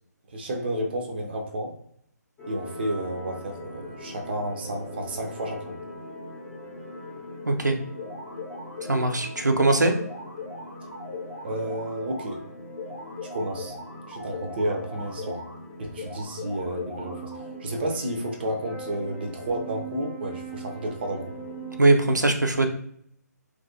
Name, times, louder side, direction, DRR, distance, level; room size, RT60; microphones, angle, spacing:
voice 1, 0.3-1.8 2.5-5.7 11.4-12.4 13.2-13.8 14.1-15.4 15.9-21.3, right 1 dB, 35° right, 2 dB, 0.6 m, -31 dB
sound 1, 2.4-21.8, equal, 15° left, 0.8 m, -41 dB
voice 2, 7.5-7.8 8.9-9.9 21.8-22.7, right 2 dB, 85° right, 3 dB, 0.5 m, -21 dB
sound 2, 8.0-9.2 9.6-12.4 12.8-15.6 16.0-17.5, left 3 dB, 85° left, 1.1 m, -40 dB
2.9 x 2.5 x 2.7 m, 0.66 s
figure-of-eight pair, 140°, 9 cm